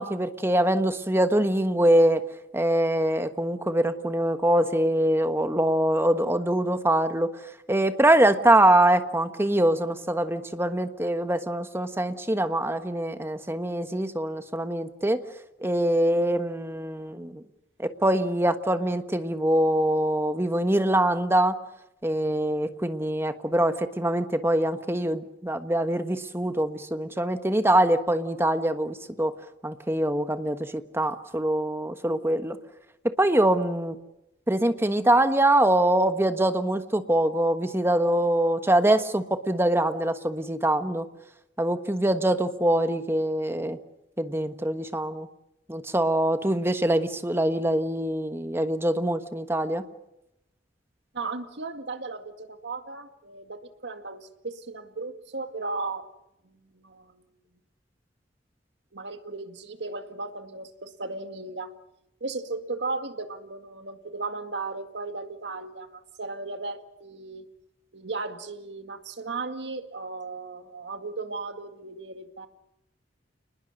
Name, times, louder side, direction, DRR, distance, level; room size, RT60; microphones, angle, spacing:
voice 1, 0.0-2.2 2.5-7.3 7.7-15.2 15.6-17.4 17.8-21.6 22.0-29.3 29.6-32.6 33.0-34.0 34.5-41.1 41.6-43.8 44.2-45.3 45.7-49.8, right 1 dB, 15° right, 9 dB, 1.3 m, -24 dB
voice 2, 51.1-56.0 56.7-57.2 58.9-61.7 62.2-67.5 67.9-72.5, right 3 dB, 70° right, 7 dB, 2.0 m, -36 dB
29.0 x 20.5 x 6.6 m, 0.87 s
head